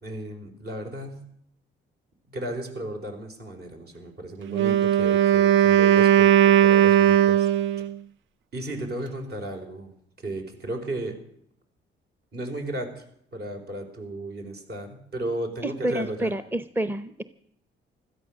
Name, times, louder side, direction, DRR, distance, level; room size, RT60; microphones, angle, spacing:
voice 1, 0.0-1.2 2.3-7.5 8.5-9.9 10.2-11.2 12.3-13.0 13.3-16.3, right 1 dB, 55° right, 3 dB, 4.4 m, -34 dB
Wind instrument woodwind instrument, 4.5-8.0, right 11 dB, 75° right, 0.5 m, -18 dB
voice 2, 15.6-17.2, right 1 dB, 10° right, 11 dB, 0.7 m, -28 dB
16.5 x 13.5 x 6.4 m, 0.70 s
cardioid pair, 90°, 20 cm